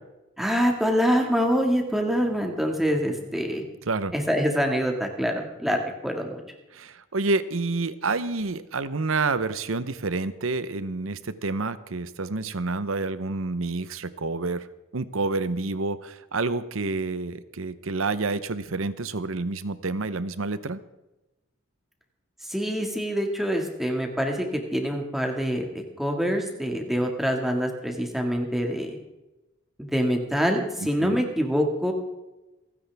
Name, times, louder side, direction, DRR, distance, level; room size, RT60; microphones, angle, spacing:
voice 1, 0.4-3.6 4.1-5.8 6.0-6.4 22.5-28.9 29.8-31.9, equal, ahead, 2 dB, 1.9 m, -25 dB
voice 2, 6.7-14.7 14.9-20.8 30.8-31.3, right 3 dB, 85° right, 14 dB, 0.8 m, -28 dB
28.0 x 10.0 x 3.5 m, 1.0 s
head